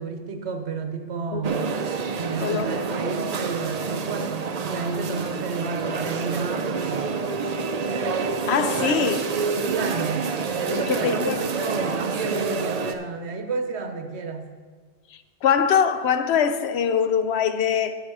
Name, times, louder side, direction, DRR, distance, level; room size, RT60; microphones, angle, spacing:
voice 1, 0.0-1.6 2.1-7.2 9.7-10.3 10.5-14.5, right 4 dB, 70° right, 6 dB, 1.2 m, -31 dB
sound 1, 1.4-12.9, right 5 dB, 45° right, 0.5 m, -27 dB
voice 2, 2.4-2.7 8.5-9.3 10.9-11.4 15.4-18.0, left 7 dB, 70° left, 10 dB, 0.8 m, -22 dB
9.3 x 7.4 x 4.8 m, 1.5 s
omnidirectional pair, 1.2 m